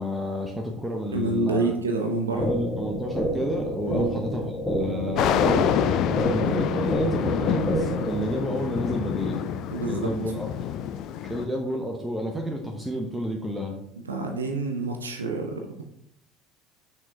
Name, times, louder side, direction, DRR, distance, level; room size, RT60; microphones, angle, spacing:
voice 1, 0.0-1.7 2.3-5.7 6.3-9.4 9.9-10.5 11.3-13.8, equal, 10° right, 1 dB, 0.8 m, -30 dB
voice 2, 1.1-2.5 3.8-4.1 6.4-6.5 9.7-10.1 14.1-15.8, right 2 dB, 80° right, 3 dB, 0.7 m, -27 dB
sound 1, 2.4-8.4, right 1 dB, 10° left, 1.1 m, -29 dB
sound 2, 5.2-11.4, left 9 dB, 50° left, 0.4 m, -27 dB
6.1 x 4.5 x 3.7 m, 0.73 s
figure-of-eight pair, 65°, 0 cm